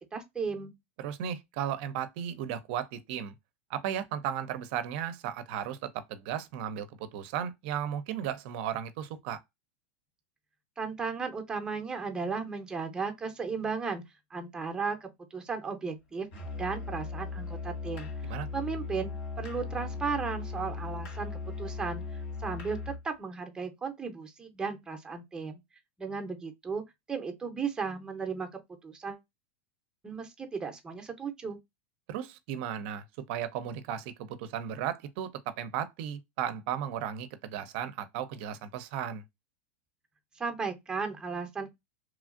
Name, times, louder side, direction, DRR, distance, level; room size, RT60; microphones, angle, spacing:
voice 1, 0.1-0.7 10.8-14.0 14.3-16.3 16.6-19.1 19.4-22.0 22.4-22.8 23.0-25.6 26.0-26.8 27.1-29.2 30.0-31.6 40.4-41.7, right 5 dB, 10° right, 0.7 m, -35 dB
voice 2, 1.0-3.3 3.7-9.4 18.3-18.5 32.1-39.2, right 9 dB, 55° right, 0.5 m, -35 dB
Musical instrument, 16.3-23.1, left 4 dB, 65° left, 1.7 m, -38 dB
3.0 x 2.4 x 2.4 m
supercardioid pair, 135°, 7 cm